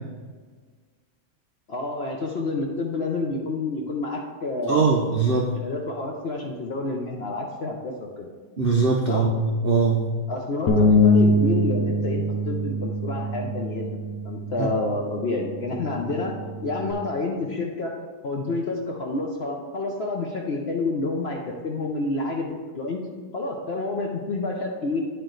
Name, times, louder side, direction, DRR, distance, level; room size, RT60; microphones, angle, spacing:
voice 1, 1.7-5.0 5.6-8.3 9.1-9.3 10.3-16.3 16.6-17.9 18.2-23.0 23.3-25.0, left 2 dB, 55° left, 0 dB, 0.7 m, -29 dB
voice 2, 4.7-5.5 8.6-10.1 14.6-14.7, right 4 dB, 70° right, 0 dB, 0.5 m, -21 dB
Bass guitar, 10.7-16.9, left 1 dB, 75° left, 1.4 m, -24 dB
10.0 x 4.6 x 3.8 m, 1.5 s
omnidirectional pair, 1.8 m